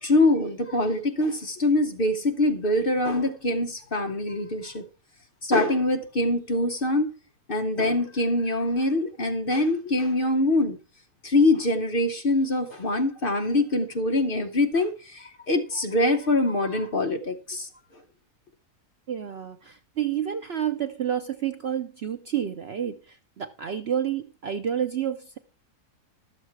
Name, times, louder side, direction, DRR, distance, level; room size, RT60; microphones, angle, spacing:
voice 1, 0.0-4.8 5.4-7.1 7.5-10.8 11.2-17.7, left 2 dB, 45° left, 0.9 m, -24 dB
voice 2, 19.1-25.4, right 9 dB, 60° right, 0.7 m, -29 dB
12.5 x 7.2 x 4.6 m
omnidirectional pair, 1.6 m